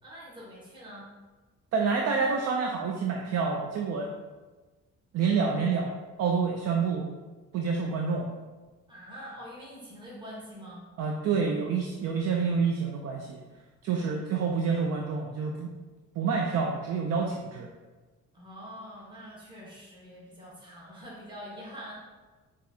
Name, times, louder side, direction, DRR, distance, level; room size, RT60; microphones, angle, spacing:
voice 1, 0.0-1.1 8.9-10.9 18.3-21.9, equal, 15° right, -6 dB, 1.2 m, -45 dB
voice 2, 1.7-4.1 5.1-5.9 6.2-7.1 7.5-8.3 11.0-13.4 13.8-15.7 16.2-17.7, right 5 dB, 55° right, 2 dB, 0.5 m, -28 dB
5.8 x 2.5 x 2.7 m, 1.3 s
cardioid pair, 90°, 30 cm